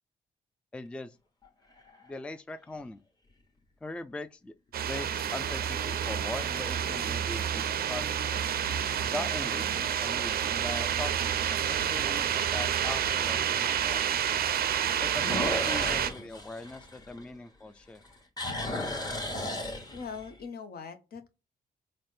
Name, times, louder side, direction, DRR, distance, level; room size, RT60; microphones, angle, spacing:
voice 1, 0.7-1.2 2.0-3.0 3.8-4.5 4.9-8.4 9.0-14.0 15.0-18.0, left 2 dB, 5° left, 0.3 m, -41 dB
sound 1, 1.4-2.1 2.8-2.9 8.1-8.6 9.0-9.1 9.7-9.8 10.0-10.1 11.7-11.8 15.1-17.6 17.9-20.3, left 1 dB, 25° left, 1.1 m, -35 dB
sound 2, 4.7-16.1, right 9 dB, 65° right, 0.4 m, -29 dB
voice 2, 19.9-21.3, left 5 dB, 65° left, 0.7 m, -41 dB
4.0 x 2.1 x 3.2 m
supercardioid pair, 60°, 17 cm